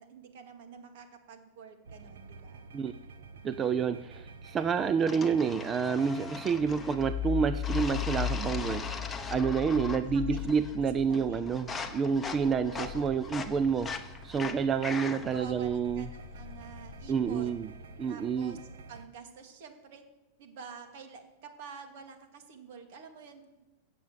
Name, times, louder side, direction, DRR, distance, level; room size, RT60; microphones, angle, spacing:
voice 1, 0.0-2.7 9.5-10.5 11.1-11.4 12.4-13.1 15.1-17.7 18.1-18.6 18.9-20.0 20.4-23.6, right 5 dB, 60° right, 5 dB, 2.4 m, -49 dB
sound 1, 1.8-19.1, right 3 dB, 90° right, 1.2 m, -49 dB
voice 2, 3.4-8.9 9.3-13.9 14.2-16.1 17.1-17.7 18.0-18.6, right 6 dB, 20° right, 12 dB, 0.4 m, -29 dB
sound 2, 5.1-7.1 7.6-10.1 10.4-10.8 11.1-15.4, left 5 dB, 10° left, 1.0 m, -40 dB
sound 3, 6.6-14.8 15.2-17.8, left 10 dB, 40° left, 0.4 m, -38 dB
16.0 x 7.7 x 7.5 m, 1.0 s
supercardioid pair, 150°, 0 cm